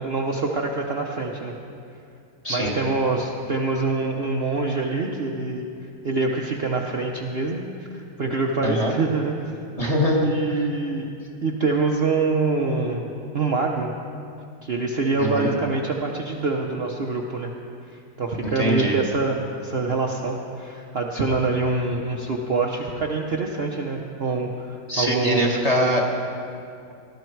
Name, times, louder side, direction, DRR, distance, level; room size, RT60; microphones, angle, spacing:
voice 1, 0.0-1.5 2.5-5.7 6.0-7.6 7.9-9.5 10.2-11.1 11.4-13.1 13.3-13.9 14.6-17.5 18.2-25.4, right 3 dB, 45° right, 0 dB, 0.9 m, -25 dB
voice 2, 8.6-8.9 9.8-10.6 15.2-15.5 18.4-19.0 24.9-26.0, equal, 25° left, -1 dB, 1.7 m, -23 dB
18.5 x 13.0 x 4.6 m, 2.5 s
omnidirectional pair, 1.8 m